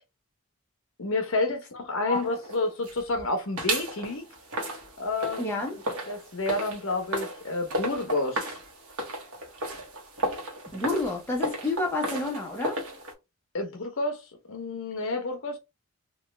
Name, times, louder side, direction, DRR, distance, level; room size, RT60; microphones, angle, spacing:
voice 1, 1.0-4.2 5.0-5.6 6.1-8.6 13.5-14.2 14.5-15.6, left 2 dB, 65° left, 0.8 m, -29 dB
sound 1, 2.1-3.2 3.6-13.1, right 1 dB, 80° right, 1.1 m, -34 dB
voice 2, 5.4-5.8 10.7-12.8, left 2 dB, 10° left, 0.6 m, -29 dB
3.1 x 2.3 x 3.1 m
head